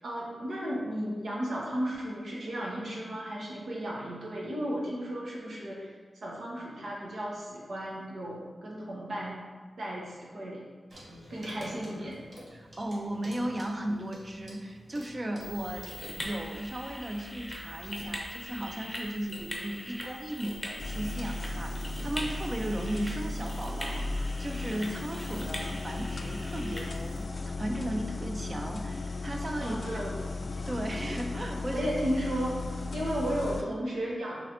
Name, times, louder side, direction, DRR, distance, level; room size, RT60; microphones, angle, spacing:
voice 1, 0.0-5.9 6.2-9.4 9.8-10.7 11.3-12.2 29.6-30.2 31.7-32.7 32.9-34.4, equal, 80° right, -5 dB, 1.0 m, -34 dB
Clock, 10.9-16.1, equal, 55° right, 1.2 m, -49 dB
voice 2, 12.5-15.9 16.2-29.8 30.4-31.9, right 1 dB, 30° right, 3 dB, 0.5 m, -36 dB
sound 1, 15.4-27.2, equal, ahead, 0.9 m, -42 dB
sound 2, 20.8-33.6, left 2 dB, 50° left, 0.3 m, -36 dB
3.8 x 3.2 x 4.3 m, 1.4 s
wide cardioid pair, 95°, 0 cm